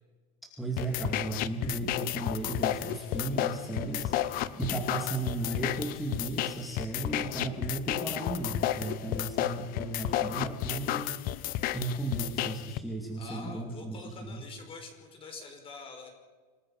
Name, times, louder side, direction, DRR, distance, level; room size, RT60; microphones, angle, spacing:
voice 1, 0.6-14.4, right 2 dB, ahead, -1 dB, 2.4 m, -35 dB
sound 1, 0.8-12.8, left 13 dB, 50° left, 0.9 m, -32 dB
voice 2, 13.2-16.1, left 4 dB, 30° left, 4 dB, 5.2 m, -45 dB
27.0 x 19.5 x 5.7 m, 1.4 s
cardioid pair, 155°, 19 cm